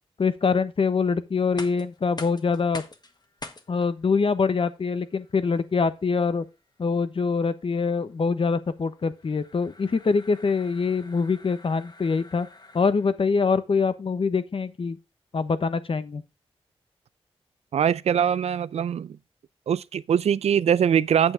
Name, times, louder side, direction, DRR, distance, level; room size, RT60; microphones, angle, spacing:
voice 1, 0.2-2.8 3.7-6.4 6.8-12.5 12.7-15.0 15.3-16.2, left 5 dB, 60° left, 1.1 m, -24 dB
sound 1, 1.4-13.3, left 3 dB, 40° left, 1.6 m, -47 dB
voice 2, 17.7-19.2 19.7-21.3, right 8 dB, 85° right, 0.5 m, -22 dB
8.5 x 7.1 x 4.8 m
cardioid pair, 55°, 11 cm